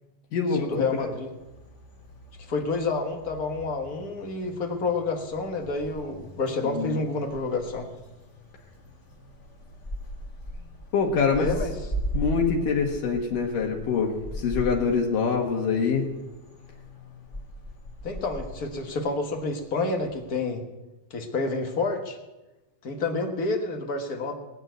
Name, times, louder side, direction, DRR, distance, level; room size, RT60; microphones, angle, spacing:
voice 1, 0.5-1.3 2.5-7.9 11.3-11.8 18.0-20.6 21.1-22.2 22.8-24.3, left 3 dB, 50° left, 4 dB, 1.0 m, -29 dB
sound 1, 0.7-20.4, equal, 30° left, 1.4 m, -39 dB
voice 2, 10.9-11.5 12.1-16.1, left 5 dB, 80° left, 0 dB, 3.1 m, -24 dB
20.0 x 6.7 x 9.2 m, 1.1 s
omnidirectional pair, 3.7 m